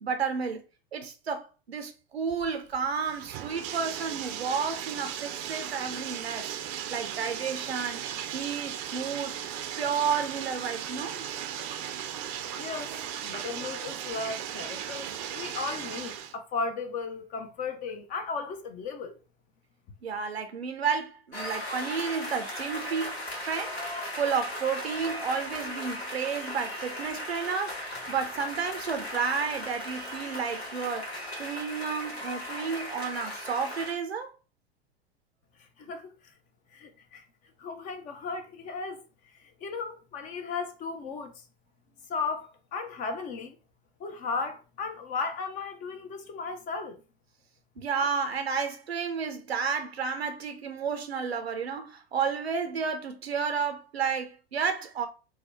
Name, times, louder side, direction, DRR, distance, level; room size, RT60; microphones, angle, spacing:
voice 1, 0.0-0.6 0.9-6.5 6.9-8.0 8.3-9.4 9.8-11.3 20.0-23.1 23.4-31.1 31.4-34.3 47.8-55.1, right 6 dB, 80° right, 0.5 m, -31 dB
Bathtub (filling or washing), 2.3-16.3, right 10 dB, 35° right, 0.5 m, -37 dB
voice 2, 12.6-13.0 13.2-19.2 35.6-36.3 36.7-37.3 37.6-41.5 42.1-43.6 44.0-47.0, left 4 dB, 25° left, 0.5 m, -36 dB
sound 1, 21.3-34.0, left 1 dB, 80° left, 1.0 m, -37 dB
2.7 x 2.1 x 3.2 m
figure-of-eight pair, 90°, 31 cm